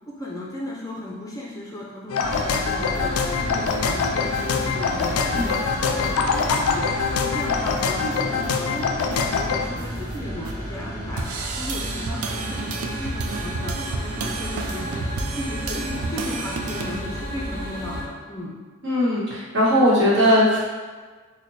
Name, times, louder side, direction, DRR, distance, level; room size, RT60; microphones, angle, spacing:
voice 1, 0.2-3.1 3.4-18.5, left 1 dB, 15° left, -4 dB, 0.4 m, -35 dB
sound 1, 2.1-9.7, left 5 dB, 85° left, 0.3 m, -24 dB
sound 2, 2.2-18.0, equal, 30° right, 1.0 m, -32 dB
sound 3, 2.8-5.7 6.0-6.5 6.9-7.0 7.2-10.5 11.1-17.0, right 3 dB, 90° right, 0.4 m, -33 dB
voice 2, 18.8-20.6, equal, 60° right, -9 dB, 1.2 m, -18 dB
4.1 x 2.2 x 3.1 m, 1.4 s
head